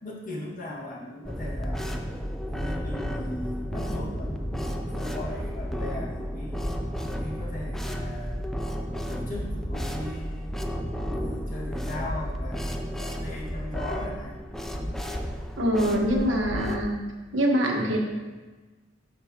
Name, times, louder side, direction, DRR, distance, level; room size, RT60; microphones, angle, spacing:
voice 1, 0.0-2.0 2.5-6.6 7.1-8.4 9.1-10.6 11.1-14.4, left 1 dB, 45° left, -4 dB, 1.8 m, -38 dB
sound 1, 1.2-16.8, equal, ahead, 0.5 m, -32 dB
voice 2, 15.6-16.9 17.3-18.0, equal, 90° right, 0 dB, 1.4 m, -24 dB
12.5 x 5.2 x 2.9 m, 1.3 s
head